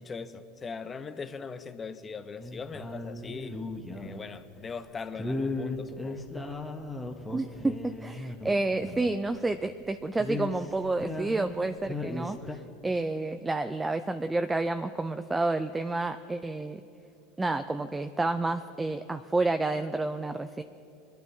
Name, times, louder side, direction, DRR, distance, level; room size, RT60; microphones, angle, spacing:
voice 1, 0.0-3.6 4.0-6.2, left 5 dB, 25° left, 11 dB, 0.7 m, -40 dB
sound 1, 2.4-4.3 5.2-9.2 9.5-9.6 9.9-11.6 11.8-12.5, left 2 dB, 10° left, 1.1 m, -36 dB
voice 2, 7.3-16.8 17.4-20.6, right 2 dB, 10° right, 9 dB, 0.4 m, -30 dB
22.5 x 11.5 x 2.7 m, 2.7 s
hypercardioid pair, 100°, 0 cm